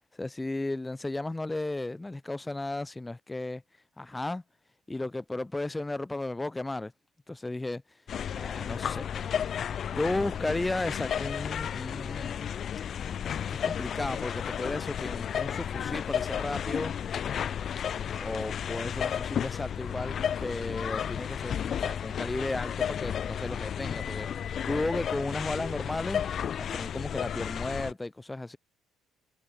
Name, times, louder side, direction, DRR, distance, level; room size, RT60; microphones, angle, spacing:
voice 1, 0.2-3.6 4.0-4.4 4.9-6.9 7.3-7.8 8.3-9.3 9.9-12.5 13.5-16.9 18.2-24.3 24.6-26.2 26.6-28.6, left 2 dB, 15° left, 2.9 m, -34 dB
sound 1, 8.1-27.9, left 8 dB, 50° left, 1.3 m, -33 dB
supercardioid pair, 80°, 0 cm